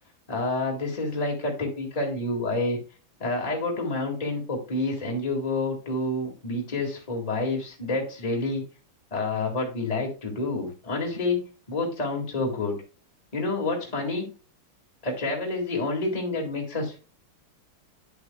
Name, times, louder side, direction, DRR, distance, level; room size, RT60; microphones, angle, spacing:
voice 1, 0.3-2.8 3.2-8.6 9.1-11.4 11.7-12.8 13.3-14.2 15.0-17.0, left 2 dB, 15° left, -1 dB, 2.1 m, -28 dB
9.1 x 8.1 x 2.3 m, 0.34 s
omnidirectional pair, 2.4 m